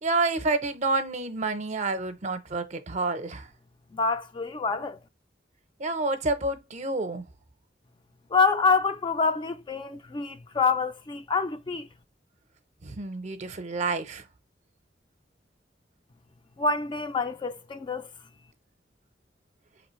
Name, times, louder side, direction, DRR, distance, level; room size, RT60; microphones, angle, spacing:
voice 1, 0.0-3.5 5.8-7.2 12.8-14.2, right 3 dB, 40° right, 0.6 m, -29 dB
voice 2, 3.9-5.0 8.3-11.9 16.6-18.1, left 4 dB, 30° left, 0.4 m, -26 dB
4.8 x 3.1 x 3.0 m
head